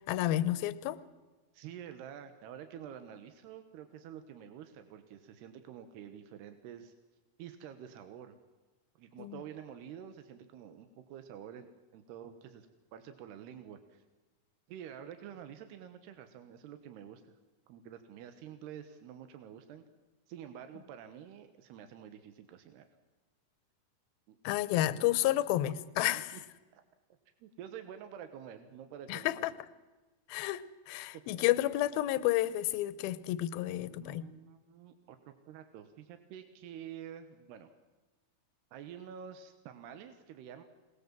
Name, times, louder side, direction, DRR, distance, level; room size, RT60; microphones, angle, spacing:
voice 1, 0.1-1.0 9.2-9.4 24.4-26.4 29.1-29.5 30.3-34.3, left 14 dB, 75° left, 15 dB, 2.6 m, -31 dB
voice 2, 1.5-6.9 7.4-8.4 9.0-11.7 11.9-12.7 12.9-14.0 14.7-17.3 17.7-19.8 20.3-22.9 24.3-24.4 24.9-25.4 26.0-26.4 26.7-26.8 27.4-29.5 31.1-31.4 33.8-37.7 38.7-40.6, right 9 dB, 85° right, 8 dB, 3.4 m, -48 dB
27.0 x 19.5 x 7.5 m, 1.2 s
omnidirectional pair, 4.6 m